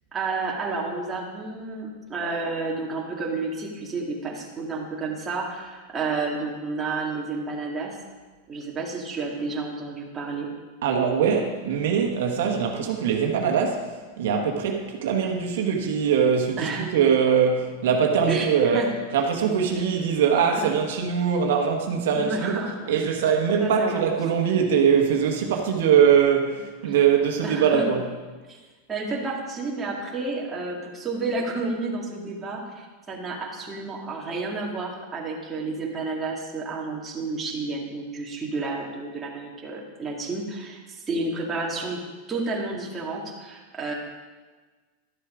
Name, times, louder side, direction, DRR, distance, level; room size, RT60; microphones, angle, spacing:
voice 1, 0.1-8.0 8.5-10.5 16.6-16.9 18.3-18.9 20.6-20.7 22.2-22.9 23.6-24.0 26.8-27.0 27.4-27.8 28.5-28.6 28.9-42.0 42.3-43.9, right 3 dB, 15° right, -3 dB, 2.1 m, -31 dB
voice 2, 10.8-22.6 22.9-28.0, right 7 dB, 75° right, 2 dB, 1.3 m, -22 dB
12.0 x 6.7 x 4.9 m, 1.3 s
supercardioid pair, 130°, 0 cm